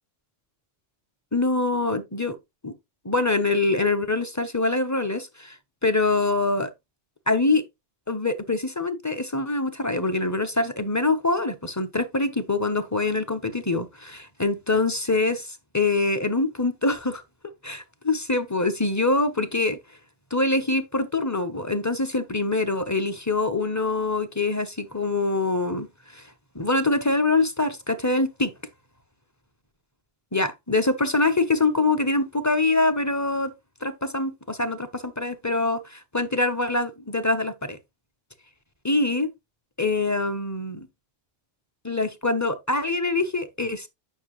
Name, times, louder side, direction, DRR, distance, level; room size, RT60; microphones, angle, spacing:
voice 1, 1.3-2.4 2.6-2.7 3.0-5.6 5.8-6.7 7.3-7.6 8.1-17.2 17.6-19.8 20.3-25.9 26.1-26.2 26.5-28.5 30.3-33.5 33.8-37.8 38.8-39.3 39.8-40.8 41.8-43.9, left 2 dB, 15° left, 0.8 m, -24 dB
9.5 x 6.0 x 3.1 m
omnidirectional pair, 1.2 m